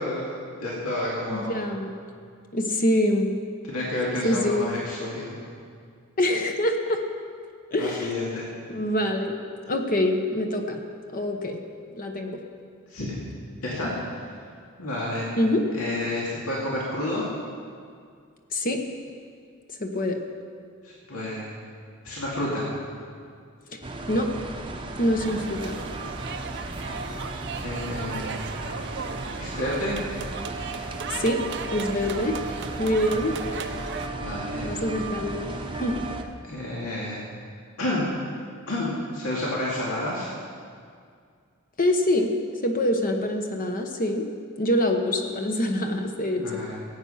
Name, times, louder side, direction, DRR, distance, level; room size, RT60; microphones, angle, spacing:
voice 1, 0.0-1.6 3.6-5.4 7.8-8.5 12.9-13.1 13.6-14.3 14.8-15.3 15.7-17.2 20.8-21.5 22.0-22.7 27.6-28.5 29.4-30.0 34.1-34.7 36.5-37.2 37.8-38.1 38.7-40.3 46.3-46.7, left 1 dB, 75° left, -5 dB, 2.4 m, -30 dB
voice 2, 1.3-1.9 2.5-3.3 4.2-4.7 6.2-7.0 7.7-8.1 8.7-9.3 9.7-10.8 11.1-11.6 12.0-12.4 15.4-15.6 18.5-18.8 19.8-20.2 24.1-24.3 25.0-25.8 31.1-31.4 31.7-32.4 32.8-33.4 34.6-35.5 35.8-36.0 41.8-42.3 42.6-44.2 44.6-46.6, left 1 dB, 40° left, 4 dB, 1.0 m, -25 dB
sound 1, 23.8-36.2, right 2 dB, 25° right, 0.8 m, -35 dB
sound 2, 25.2-34.1, right 6 dB, 55° right, 0.7 m, -37 dB
17.0 x 8.4 x 5.7 m, 2.2 s
head